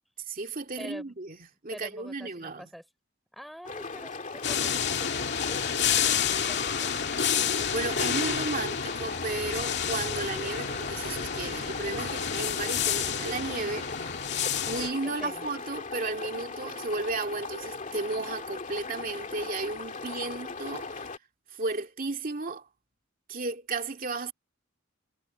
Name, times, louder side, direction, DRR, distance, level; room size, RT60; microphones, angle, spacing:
voice 1, 0.3-1.4 1.6-2.7 7.7-14.0 14.6-21.1 21.5-22.7 23.3-24.3, right 3 dB, 45° right, 2.4 m, -34 dB
voice 2, 0.8-1.1 1.7-2.8 3.3-7.4 15.2-15.5, equal, ahead, 3.5 m, -46 dB
sound 1, 3.6-21.2, left 4 dB, 40° left, 2.4 m, -39 dB
sound 2, 4.4-14.9, left 8 dB, 55° left, 2.3 m, -29 dB
head